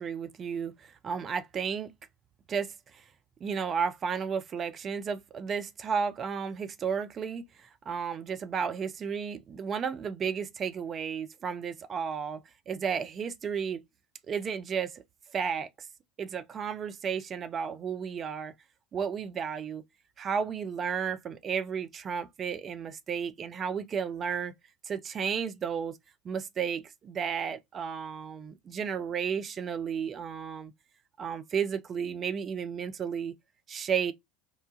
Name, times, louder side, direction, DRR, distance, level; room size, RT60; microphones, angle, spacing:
voice 1, 0.0-1.9 2.5-3.0 3.4-13.8 14.3-15.0 15.3-15.9 16.2-18.5 18.9-19.8 20.2-24.5 24.8-26.0 26.2-30.7 31.2-33.3 33.7-34.1, right 6 dB, 35° right, 0.4 m, -33 dB
2.8 x 2.2 x 2.6 m
figure-of-eight pair, 75°, 0 cm